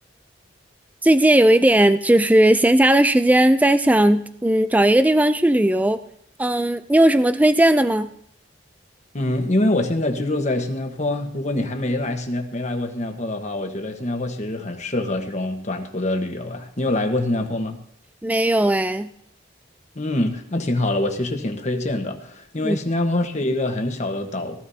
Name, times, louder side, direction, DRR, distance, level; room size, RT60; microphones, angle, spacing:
voice 1, 1.0-6.0 6.4-8.1 18.2-19.1 22.6-22.8, right 1 dB, 10° right, 11 dB, 0.4 m, -17 dB
voice 2, 9.1-17.8 19.9-24.6, left 1 dB, 40° left, 5 dB, 1.3 m, -25 dB
18.5 x 14.5 x 2.8 m, 0.70 s
head